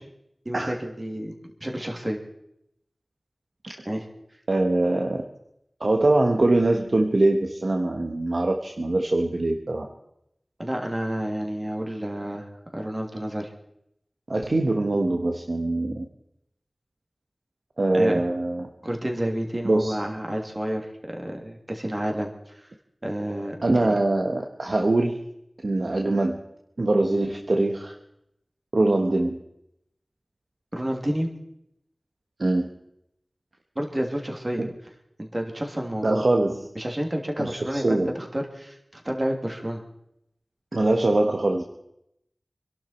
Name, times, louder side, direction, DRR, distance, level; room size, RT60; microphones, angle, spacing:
voice 1, 0.4-1.3 1.6-2.2 3.8-4.0 10.6-13.5 17.9-18.2 18.8-22.3 23.0-23.9 30.7-31.3 33.7-34.6 35.2-36.2 36.7-39.8, right 1 dB, 30° right, 1 dB, 2.8 m, -30 dB
voice 2, 4.5-5.2 5.8-9.9 14.3-16.0 17.8-18.7 19.6-20.0 23.6-25.2 25.6-26.4 26.8-27.9 28.7-29.4 32.4-32.7 34.6-34.7 36.0-36.6 37.4-38.1 40.7-41.6, right 2 dB, 65° right, 3 dB, 1.3 m, -23 dB
25.5 x 11.5 x 4.5 m, 0.79 s
wide cardioid pair, 65°, 0 cm